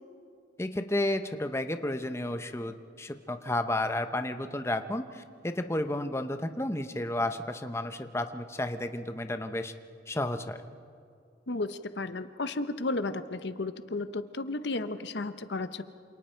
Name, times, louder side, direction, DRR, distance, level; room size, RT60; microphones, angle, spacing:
voice 1, 0.6-9.7 10.1-10.6, left 1 dB, 15° left, 8 dB, 0.8 m, -32 dB
voice 2, 11.5-15.8, left 2 dB, 70° left, 11 dB, 0.9 m, -33 dB
28.0 x 27.5 x 4.5 m, 2.3 s
head